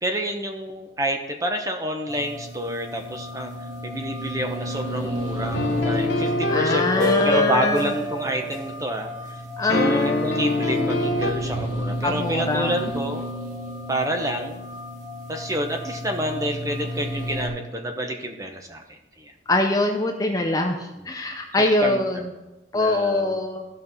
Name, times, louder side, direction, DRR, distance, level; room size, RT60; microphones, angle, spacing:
voice 1, 0.0-3.5 3.8-9.1 9.6-13.2 13.9-14.7 15.3-19.3 21.0-21.1 21.6-22.0 22.7-23.4, right 1 dB, 15° right, 4 dB, 0.9 m, -29 dB
sound 1, 2.1-17.5, equal, 40° right, 2.0 m, -32 dB
sound 2, 5.5-8.8 9.7-11.3, left 2 dB, 65° left, 1.0 m, -24 dB
voice 2, 6.5-7.9 9.6-10.5 12.0-12.7 19.5-20.7 21.1-22.2 22.7-23.6, left 2 dB, 20° left, 3 dB, 0.6 m, -23 dB
15.0 x 5.4 x 4.1 m, 1.0 s
head